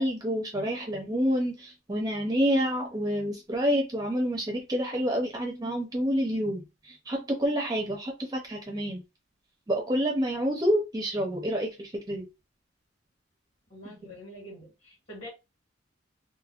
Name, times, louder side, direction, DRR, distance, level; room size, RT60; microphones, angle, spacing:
voice 1, 0.0-9.0 9.7-12.3, equal, 20° right, 0.5 m, -28 dB
voice 2, 13.7-15.3, equal, 35° left, 1.7 m, -45 dB
3.4 x 2.1 x 2.3 m
head